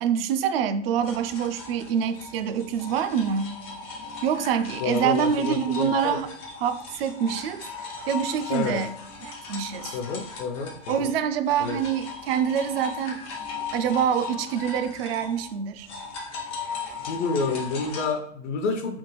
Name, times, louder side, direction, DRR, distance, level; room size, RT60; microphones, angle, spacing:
voice 1, 0.0-3.6 4.2-6.3 6.6-7.6 8.1-8.9 9.2-9.9 10.9-13.2 13.7-15.9, right 8 dB, 55° right, 0.4 m, -26 dB
sound 1, 1.0-11.2 11.5-18.1, left 5 dB, 15° left, 0.3 m, -37 dB
voice 2, 4.8-6.2 8.5-8.8 9.9-11.1 11.6-11.8 17.1-19.0, left 4 dB, 70° left, 0.7 m, -29 dB
3.5 x 2.3 x 3.1 m
hypercardioid pair, 125°, 37 cm